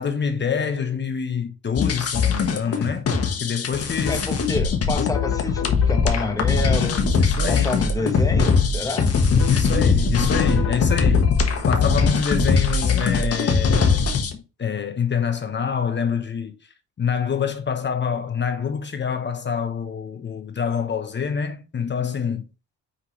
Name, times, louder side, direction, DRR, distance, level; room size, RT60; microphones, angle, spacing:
voice 1, 0.0-3.1 3.4-4.3 5.0-5.1 6.8-7.7 8.0-8.2 9.5-11.3 11.7-14.1 14.3-16.6 17.0-22.4, left 7 dB, 35° left, 1.0 m, -26 dB
sound 1, 1.8-14.3, left 5 dB, 55° left, 1.4 m, -21 dB
voice 2, 4.1-7.1 7.5-9.2, left 2 dB, 10° left, 1.0 m, -28 dB
5.7 x 5.5 x 3.2 m
cardioid pair, 90°, 30 cm